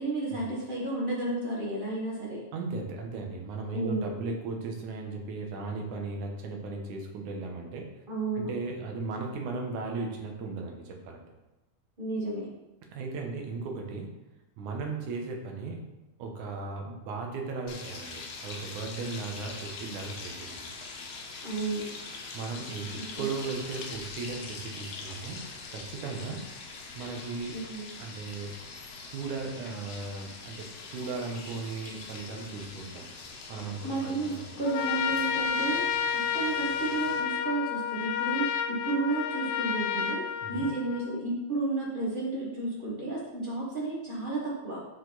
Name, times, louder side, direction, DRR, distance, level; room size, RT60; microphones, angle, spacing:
voice 1, 0.0-2.4 3.7-4.1 8.1-8.5 12.0-12.5 21.4-21.9 22.9-23.3 27.5-27.9 33.8-35.8 36.1-40.2 40.5-44.8, right 3 dB, 40° right, -5 dB, 0.7 m, -32 dB
voice 2, 2.5-7.9 8.4-11.2 12.9-14.1 14.6-15.8 16.2-20.7 22.3-25.4 25.7-26.4 27.0-27.5 28.0-28.6 29.1-33.1 33.5-34.5 40.4-40.7, right 4 dB, 90° right, 2 dB, 2.5 m, -36 dB
sound 1, 17.7-37.2, left 4 dB, 70° left, 1.8 m, -43 dB
Trumpet, 34.6-41.2, left 7 dB, 90° left, 2.1 m, -30 dB
6.9 x 4.8 x 4.0 m, 0.99 s
omnidirectional pair, 3.4 m